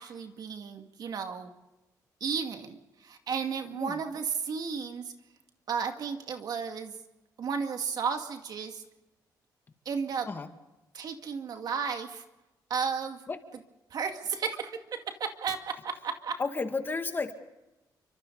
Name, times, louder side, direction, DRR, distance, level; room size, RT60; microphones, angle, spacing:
voice 1, 0.0-1.5 2.2-5.1 5.7-6.9 7.4-8.8 9.9-10.3 10.9-12.2 12.7-13.2 13.9-16.4, right 6 dB, 60° right, 5 dB, 2.3 m, -33 dB
voice 2, 16.4-17.3, left 4 dB, 30° left, 6 dB, 2.2 m, -32 dB
29.5 x 25.0 x 4.1 m, 1.0 s
cardioid pair, 120°, 8 cm